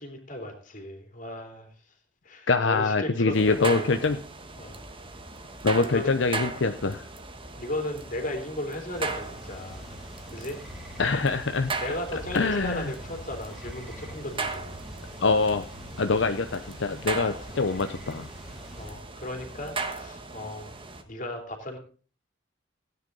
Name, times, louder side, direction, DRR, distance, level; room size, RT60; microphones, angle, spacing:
voice 1, 0.0-1.7 2.2-4.1 4.6-4.8 5.8-6.2 7.6-9.9 10.3-10.6 11.8-14.8 18.8-20.7 21.1-21.8, left 1 dB, 45° left, 4 dB, 3.1 m, -35 dB
voice 2, 2.5-4.2 5.6-7.1 11.0-12.0 12.3-12.9 15.2-15.7 16.0-18.3, left 3 dB, 70° left, 7 dB, 0.7 m, -24 dB
sound 1, 3.3-21.0, right 3 dB, 30° right, 1.5 m, -38 dB
sound 2, 8.9-18.9, equal, ahead, 2.9 m, -44 dB
17.0 x 9.5 x 4.0 m, 0.38 s
head